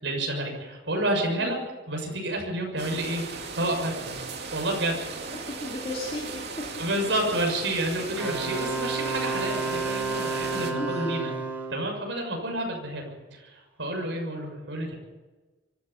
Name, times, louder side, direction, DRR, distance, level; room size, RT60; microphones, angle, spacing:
voice 1, 0.0-1.6 1.9-4.2 4.5-5.0 6.8-11.3 11.7-15.0, right 1 dB, 80° right, 1 dB, 6.7 m, -30 dB
voice 2, 1.4-1.7 5.3-6.7 10.6-11.3, left 2 dB, 35° left, -1 dB, 2.8 m, -35 dB
sound 1, 2.8-10.7, right 4 dB, 60° right, 2.9 m, -37 dB
Wind instrument woodwind instrument, 8.2-11.9, right 3 dB, 10° right, 4.1 m, -31 dB
24.5 x 13.0 x 8.5 m, 1.2 s
head